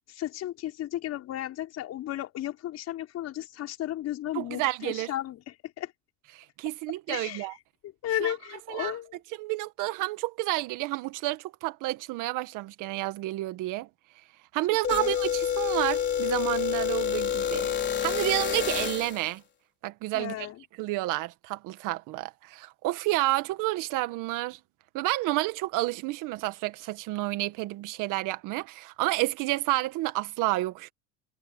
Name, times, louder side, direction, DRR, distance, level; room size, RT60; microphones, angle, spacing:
voice 1, 0.1-5.9 7.1-7.5 8.0-9.2 14.9-15.1 20.1-20.6, left 13 dB, 50° left, 6.0 m, -34 dB
voice 2, 4.3-5.1 6.3-7.5 8.2-8.3 8.7-8.9 9.4-13.9 14.5-17.7 18.0-19.4 19.8-20.5 20.8-24.6 24.9-30.9, right 18 dB, 65° right, 1.9 m, -30 dB
sound 1, 14.8-19.3, left 9 dB, 30° left, 4.3 m, -28 dB
cardioid pair, 145°, 34 cm